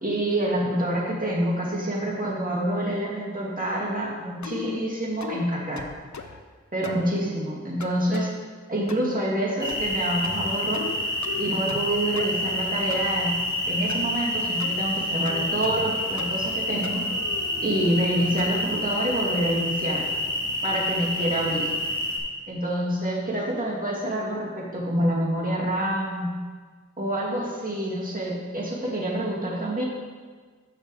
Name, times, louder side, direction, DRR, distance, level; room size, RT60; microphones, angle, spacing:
voice 1, 0.0-5.8 6.7-8.3 8.7-10.9 11.4-13.4 13.7-17.1 17.6-20.1 20.6-21.7 22.5-26.4 27.0-29.8, right 1 dB, 30° right, -5 dB, 2.2 m, -27 dB
sound 1, 4.4-4.8 5.2-5.5 5.8-6.4 6.8-7.1 7.8-8.3 8.9-9.2 9.7-10.0 10.2-11.0 11.2-11.9 12.2-13.1 13.9-14.1 14.6-14.8 15.3-15.9 16.2-16.5 16.8-18.6, left 5 dB, 75° left, 0.6 m, -38 dB
sound 2, 9.6-22.2, left 1 dB, 15° left, 1.8 m, -28 dB
6.5 x 6.4 x 4.9 m, 1.5 s
wide cardioid pair, 40°, 29 cm